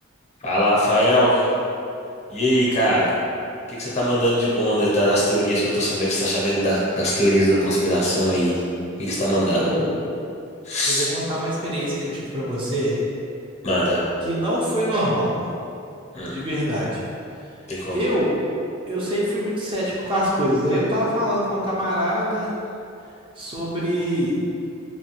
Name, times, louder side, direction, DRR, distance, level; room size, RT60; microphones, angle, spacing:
voice 1, 0.4-1.4 2.3-3.1 3.7-8.6 9.0-9.7 10.6-11.1 13.6-14.0 16.1-16.4 17.7-18.1, equal, 35° left, -6 dB, 0.6 m, -20 dB
voice 2, 9.6-9.9 10.8-13.0 14.2-15.5 16.3-17.0 17.9-18.3 18.9-22.5 23.4-24.3, equal, 25° right, -6 dB, 0.4 m, -24 dB
3.0 x 2.2 x 2.9 m, 2.6 s
head